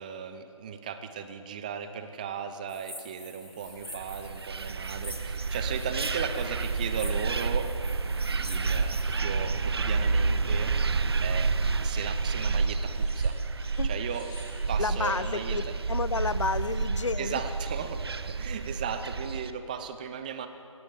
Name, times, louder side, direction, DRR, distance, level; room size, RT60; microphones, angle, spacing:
voice 1, 0.0-7.7 8.3-10.7 11.2-11.5 11.8-13.4 13.8-14.3 14.7-15.7 17.2-20.5, right 7 dB, 15° right, 10 dB, 0.6 m, -36 dB
sound 1, 1.8-17.1, left 2 dB, 30° left, 4.6 m, -57 dB
sound 2, 2.7-9.2, left 1 dB, 85° left, 4.0 m, -46 dB
sound 3, 3.8-19.5, right 4 dB, 45° right, 0.8 m, -29 dB
voice 2, 14.8-17.4, left 4 dB, 60° left, 15 dB, 0.9 m, -31 dB
21.0 x 17.5 x 7.5 m, 2.7 s
figure-of-eight pair, 150°, 17 cm